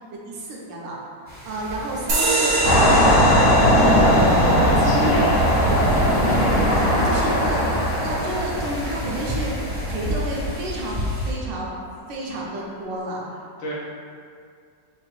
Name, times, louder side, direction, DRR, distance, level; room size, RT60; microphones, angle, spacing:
voice 1, 0.1-1.0 1.4-5.1 5.7-5.8 6.2-7.7 8.0-9.6 9.8-11.7 12.1-13.3, right 1 dB, 75° right, -4 dB, 1.3 m, -30 dB
Wind, 1.3-11.3, equal, 10° right, 0.5 m, -32 dB
sound 1, 2.1-9.2, right 2 dB, 55° right, 0.9 m, -27 dB
sound 2, 2.6-10.6, equal, 55° left, 0.9 m, -19 dB
voice 2, 4.4-6.2 13.6-13.7, equal, 80° left, -6 dB, 1.7 m, -30 dB
5.4 x 2.5 x 3.3 m, 2.3 s
omnidirectional pair, 2.1 m